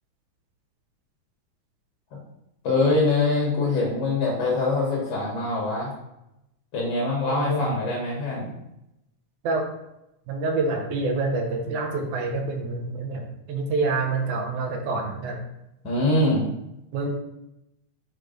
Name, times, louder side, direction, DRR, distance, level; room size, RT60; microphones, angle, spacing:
voice 1, 2.6-5.9 6.7-8.5 15.8-16.4, left 2 dB, 55° left, -3 dB, 1.8 m, -23 dB
voice 2, 7.3-7.7 9.4-9.6 10.3-15.4 16.9-17.1, right 3 dB, 70° right, 3 dB, 2.2 m, -27 dB
6.6 x 3.2 x 5.0 m, 0.88 s
omnidirectional pair, 3.8 m